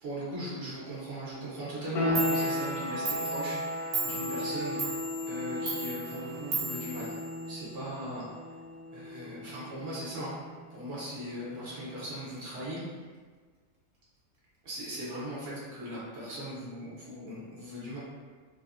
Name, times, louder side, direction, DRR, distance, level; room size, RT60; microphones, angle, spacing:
voice 1, 0.0-4.8 5.3-7.1 7.5-8.2 8.9-10.3 10.7-12.8 14.6-18.0, right 1 dB, 65° right, -8 dB, 1.1 m, -39 dB
Clock, 1.8-1.9 2.2-7.8, right 4 dB, 90° right, 1.1 m, -37 dB
sound 1, 1.9-12.5, left 1 dB, 90° left, 1.0 m, -36 dB
3.3 x 2.0 x 2.4 m, 1.5 s
omnidirectional pair, 1.4 m